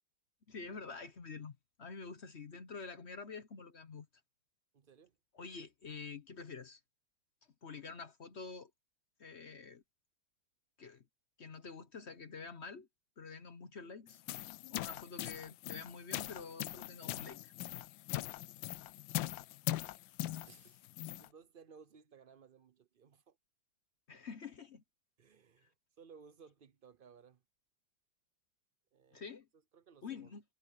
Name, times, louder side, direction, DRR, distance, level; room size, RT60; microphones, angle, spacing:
voice 1, 0.5-4.1 5.3-6.8 7.6-8.7 9.2-9.8 10.8-11.0 11.4-12.9 13.2-14.2 14.7-17.5 24.1-24.8 29.1-29.5 30.0-30.4, left 5 dB, 45° left, 1.0 m, -47 dB
voice 2, 4.7-5.2 20.4-23.4 25.2-27.4 28.9-29.3 29.7-30.3, right 6 dB, 70° right, 0.5 m, -60 dB
sound 1, 14.1-21.3, left 15 dB, 75° left, 1.3 m, -41 dB
omnidirectional pair, 2.1 m